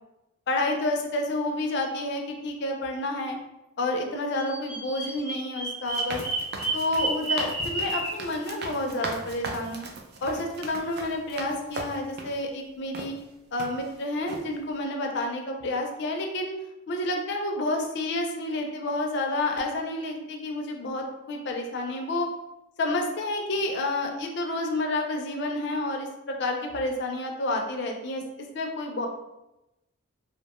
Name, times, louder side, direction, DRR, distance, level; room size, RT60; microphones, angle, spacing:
voice 1, 0.5-3.4 3.8-6.2 6.7-9.9 10.2-13.2 13.5-16.5 16.9-22.3 22.8-28.2 28.5-29.1, left 2 dB, 55° left, 2 dB, 0.4 m, -29 dB
Bird vocalization bird call bird song, 4.4-8.2, right 2 dB, 10° right, 0.9 m, -31 dB
sound 1, 5.9-12.4 12.9-13.1 13.6-14.0 14.3-14.5, right 3 dB, 50° right, 0.3 m, -38 dB
2.5 x 2.1 x 2.9 m, 0.94 s
head